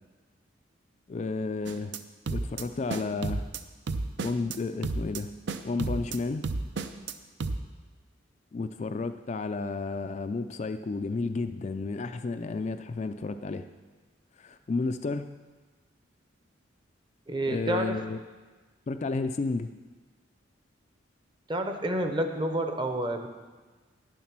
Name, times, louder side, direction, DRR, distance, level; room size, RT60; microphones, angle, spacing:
voice 1, 1.1-1.9 2.3-3.4 4.2-5.3 5.6-6.5 8.5-13.7 14.4-15.3 17.4-18.2 18.9-19.7, left 3 dB, 35° left, 8 dB, 0.3 m, -32 dB
sound 1, 1.7-2.0 2.3-2.6 2.9-3.6 3.9-4.6 4.8-5.2 5.5-6.2 6.4-7.1 7.4-7.6, right 3 dB, 65° right, 0.5 m, -32 dB
voice 2, 17.3-18.0 21.5-23.3, right 1 dB, 25° right, 6 dB, 0.7 m, -29 dB
10.0 x 7.2 x 6.0 m, 1.3 s
head